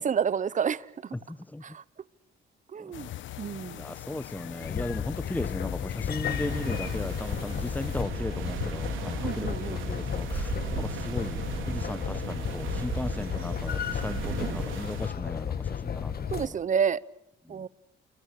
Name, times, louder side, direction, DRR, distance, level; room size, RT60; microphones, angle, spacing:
voice 1, 0.0-1.2 1.6-1.8 2.7-3.1 3.4-3.8 9.2-10.0 14.4-14.6 16.3-17.0 17.5-17.7, right 7 dB, 40° right, 0.8 m, -30 dB
voice 2, 1.3-1.6 2.8-2.9 3.8-16.6 17.5-17.6, left 1 dB, 10° left, 1.1 m, -37 dB
sound 1, 2.9-8.0, left 13 dB, 75° left, 0.9 m, -41 dB
sound 2, 4.6-16.5, left 8 dB, 50° left, 1.6 m, -33 dB
sound 3, 6.3-15.1, right 8 dB, 85° right, 3.8 m, -37 dB
29.0 x 22.0 x 6.7 m
cardioid pair, 90°, 20 cm